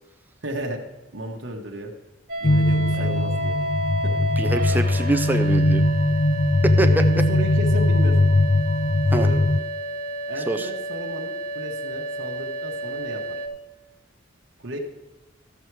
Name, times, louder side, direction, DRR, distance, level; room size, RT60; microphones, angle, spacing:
voice 1, 0.4-0.9 1.1-1.9 2.4-3.6 4.0-4.1 6.8-8.2 9.1-9.4 10.3-13.4 14.6-14.8, right 1 dB, 70° right, 1 dB, 1.3 m, -33 dB
sound 1, 2.3-13.5, right 1 dB, 50° right, 1.5 m, -31 dB
sound 2, 2.4-9.6, left 1 dB, 40° left, 0.4 m, -20 dB
voice 2, 4.4-5.8 6.6-7.0 9.1-9.3 10.5-10.7, right 1 dB, 10° right, 7 dB, 0.6 m, -25 dB
13.5 x 7.3 x 4.7 m, 1.1 s
head